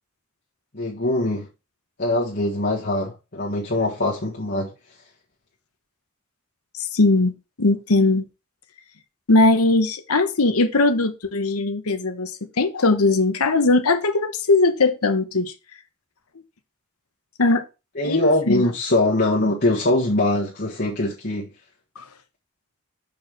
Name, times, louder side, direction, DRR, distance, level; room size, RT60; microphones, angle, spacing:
voice 1, 0.7-1.5 2.0-4.7 17.9-21.5, left 1 dB, 50° left, 1.5 m, -22 dB
voice 2, 6.9-8.2 9.3-12.3 12.6-15.5 17.4-17.6 18.0-18.7 22.0-22.1, left 2 dB, 90° left, 1.1 m, -19 dB
7.1 x 4.8 x 4.8 m
head